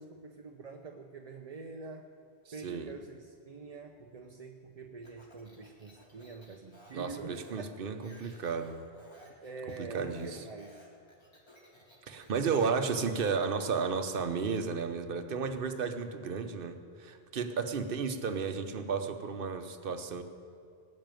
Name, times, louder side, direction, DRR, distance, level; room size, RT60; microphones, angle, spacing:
voice 1, 0.0-2.1 2.5-7.7 9.4-10.8, right 4 dB, 40° right, 3 dB, 0.7 m, -45 dB
voice 2, 2.6-2.9 6.9-8.9 9.8-10.4 12.1-20.2, right 5 dB, 55° right, 8 dB, 1.1 m, -33 dB
Speech, 5.0-12.8, equal, 25° left, 2.5 m, -58 dB
19.5 x 6.5 x 9.1 m, 2.4 s
omnidirectional pair, 1.1 m